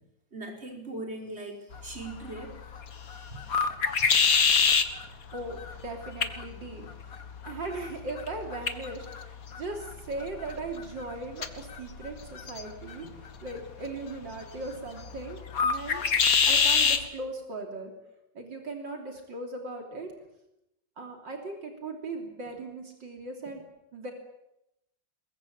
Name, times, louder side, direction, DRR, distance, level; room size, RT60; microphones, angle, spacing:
voice 1, 0.3-2.5 3.3-3.4, right 2 dB, 35° right, 1 dB, 5.0 m, -39 dB
sound 1, 1.7-17.1, left 5 dB, 50° left, 1.9 m, -29 dB
voice 2, 5.3-9.2 9.5-16.1 16.5-17.9 18.4-20.1 21.0-23.6 23.9-24.1, right 2 dB, 75° right, 2 dB, 3.8 m, -38 dB
22.0 x 22.0 x 8.6 m, 0.87 s
omnidirectional pair, 2.0 m